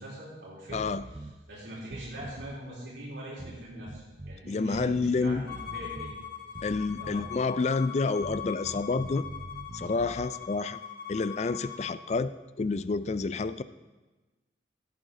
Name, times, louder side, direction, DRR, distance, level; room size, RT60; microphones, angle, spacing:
voice 1, 0.0-6.1 7.0-7.3, right 1 dB, 75° right, -7 dB, 3.8 m, -42 dB
voice 2, 0.7-1.0 4.5-5.5 6.6-9.2 9.7-10.8 11.1-12.3 12.6-13.6, left 4 dB, 35° left, 14 dB, 0.3 m, -29 dB
sound 1, 0.7-1.4 1.8-2.6 3.4-4.4 4.7-6.2 6.5-7.5 8.2-10.3, right 2 dB, 25° right, 0.5 m, -44 dB
Bowed string instrument, 5.5-12.0, left 9 dB, 50° left, 1.2 m, -41 dB
17.0 x 8.7 x 3.8 m, 1.2 s
head